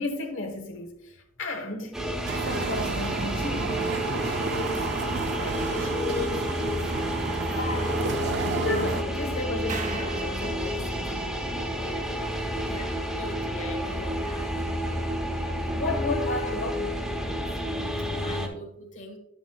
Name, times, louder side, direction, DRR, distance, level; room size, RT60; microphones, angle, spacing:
voice 1, 0.0-2.0 2.4-4.9 5.2-6.6 6.9-8.2 8.5-11.4 15.7-17.5 17.8-18.5, left 2 dB, 75° left, 1.1 m, -34 dB
sound 1, 1.9-18.5, equal, ahead, 1.0 m, -30 dB
sound 2, 2.3-9.0, right 4 dB, 55° right, 0.5 m, -32 dB
sound 3, 9.7-12.0, right 3 dB, 40° right, 0.9 m, -39 dB
voice 2, 12.7-14.5 18.1-19.2, left 1 dB, 40° left, 1.5 m, -41 dB
9.9 x 7.0 x 2.3 m
head